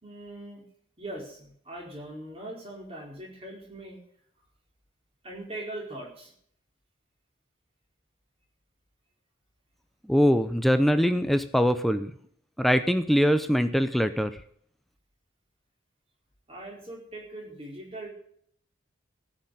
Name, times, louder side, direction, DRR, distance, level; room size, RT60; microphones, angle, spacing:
voice 1, 0.0-0.6 1.0-4.0 5.2-6.3 16.5-18.1, right 1 dB, 30° right, -1 dB, 4.5 m, -41 dB
voice 2, 10.1-12.1 12.6-14.3, equal, ahead, 10 dB, 0.6 m, -22 dB
15.5 x 6.6 x 8.5 m, 0.63 s
head